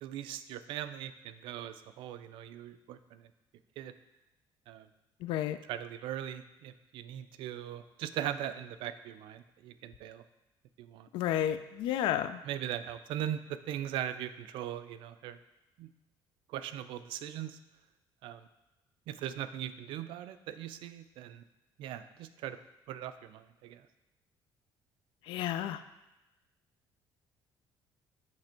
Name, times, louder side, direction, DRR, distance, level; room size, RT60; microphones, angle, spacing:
voice 1, 0.0-3.3 3.8-3.9 4.7-4.9 5.7-10.2 10.8-11.1 12.0-12.2 12.4-15.4 15.8-15.9 16.5-17.6 18.2-18.5 19.1-21.4 21.8-22.6 22.9-23.9, right 11 dB, 80° right, 12 dB, 0.4 m, -40 dB
voice 2, 5.2-5.6 11.1-12.4 25.3-25.8, left 11 dB, 75° left, 12 dB, 0.4 m, -31 dB
7.5 x 3.3 x 4.4 m, 1.0 s
cardioid pair, 135°, 9 cm